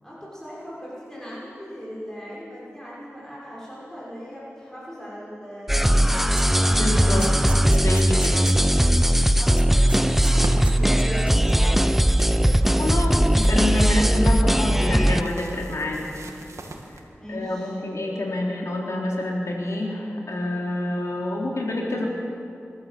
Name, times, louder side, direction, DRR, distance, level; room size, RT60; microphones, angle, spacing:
voice 1, 0.0-6.7 7.0-7.6 8.3-8.8 9.3-13.1 17.1-17.8, equal, 10° left, -7 dB, 6.5 m, -38 dB
sound 1, 5.7-15.2, equal, 5° right, 0.7 m, -19 dB
sound 2, 6.4-6.6 6.9-8.9 9.2-9.3 9.6-10.3 10.6-11.7, right 1 dB, 25° right, 1.9 m, -39 dB
voice 2, 6.8-7.3 7.7-8.4 12.8-16.0 16.9-17.0 17.3-22.1, left 1 dB, 90° left, -1 dB, 3.6 m, -27 dB
sound 3, 10.3-17.0, right 2 dB, 85° right, 1.9 m, -40 dB
27.5 x 12.5 x 7.7 m, 2.7 s
wide cardioid pair, 60°, 5 cm